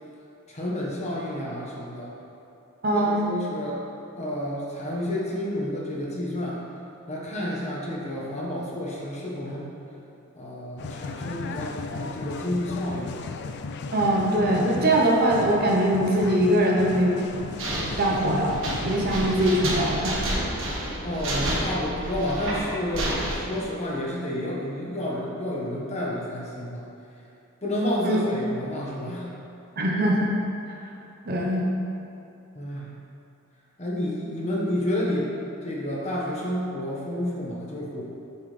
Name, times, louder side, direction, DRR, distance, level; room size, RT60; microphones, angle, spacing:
voice 1, 0.5-2.1 2.9-3.8 4.2-6.6 7.1-9.7 10.3-13.2 21.0-26.8 27.6-29.3 32.5-32.9 33.8-35.3 35.6-38.0, left 1 dB, 35° left, -4 dB, 1.3 m, -30 dB
voice 2, 2.8-3.2 13.9-17.3 18.0-20.5 28.0-28.2 29.8-30.4 31.3-31.7, right 1 dB, 50° right, -2 dB, 0.9 m, -22 dB
sound 1, 10.8-19.7, left 4 dB, 55° left, 0.4 m, -36 dB
sound 2, 17.2-23.4, right 1 dB, 70° right, 1.5 m, -30 dB
7.2 x 7.1 x 3.3 m, 2.8 s
head